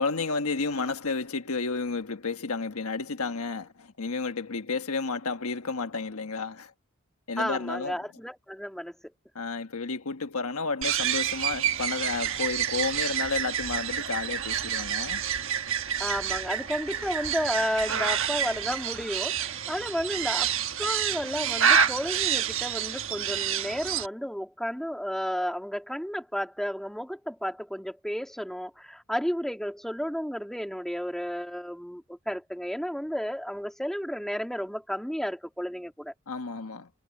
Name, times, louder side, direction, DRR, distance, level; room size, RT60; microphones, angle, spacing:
voice 1, 0.0-6.7 7.3-8.0 9.3-15.2 36.3-36.9, left 4 dB, 80° left, 1.3 m, -31 dB
voice 2, 7.4-9.0 16.0-36.1, equal, ahead, 2.6 m, -32 dB
sound 1, 10.8-24.1, right 8 dB, 60° right, 1.3 m, -28 dB
head